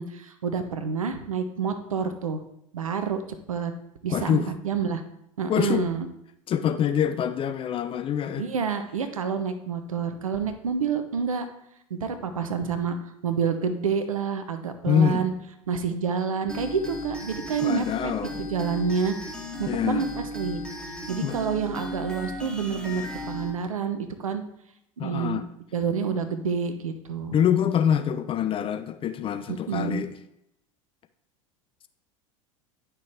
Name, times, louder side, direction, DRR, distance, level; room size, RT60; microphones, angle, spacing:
voice 1, 0.0-2.4 2.7-3.2 3.5-3.7 4.0-5.0 5.4-6.1 8.4-11.5 11.9-13.0 13.2-15.3 15.7-18.1 18.4-19.1 19.6-20.6 21.1-24.4 25.0-25.4 25.7-27.4 29.5-30.1, right 6 dB, 80° right, 0.8 m, -28 dB
voice 2, 4.1-4.5 5.5-5.9 6.5-8.5 14.9-15.2 17.6-18.4 19.7-20.1 21.2-21.4 25.0-25.4 27.3-30.1, left 9 dB, 30° left, 0.5 m, -25 dB
sound 1, 16.5-23.5, left 1 dB, 5° left, 2.1 m, -36 dB
10.5 x 5.9 x 3.4 m
figure-of-eight pair, 80°, 17 cm